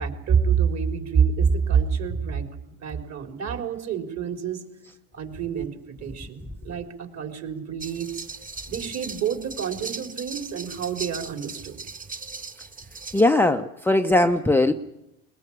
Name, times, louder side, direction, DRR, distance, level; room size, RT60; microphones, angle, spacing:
voice 1, 0.0-2.5 2.8-4.6 5.2-8.1 8.7-11.8, right 7 dB, 40° right, 4 dB, 3.9 m, -27 dB
sound 1, 7.8-13.2, right 4 dB, 20° right, 1.7 m, -38 dB
voice 2, 13.1-14.7, left 2 dB, 5° left, 5 dB, 0.8 m, -19 dB
21.5 x 21.0 x 8.7 m, 0.85 s
supercardioid pair, 105°, 40 cm